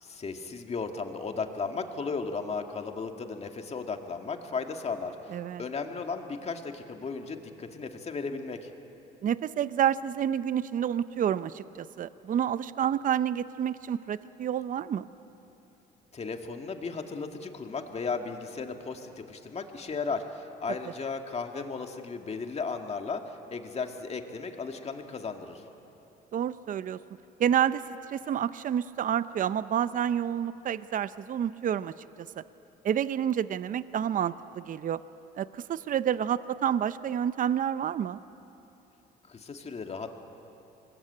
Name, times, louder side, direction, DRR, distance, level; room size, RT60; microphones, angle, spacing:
voice 1, 0.0-5.1 5.6-8.7 16.1-23.2 23.5-25.6 39.3-40.1, left 4 dB, 35° left, 5 dB, 2.1 m, -35 dB
voice 2, 5.3-5.6 9.2-15.1 26.3-27.0 27.4-27.8 28.1-32.4 32.8-35.0 35.4-38.2, right 9 dB, 45° right, 15 dB, 0.7 m, -29 dB
25.5 x 21.0 x 8.8 m, 3.0 s
cardioid pair, 95°, 19 cm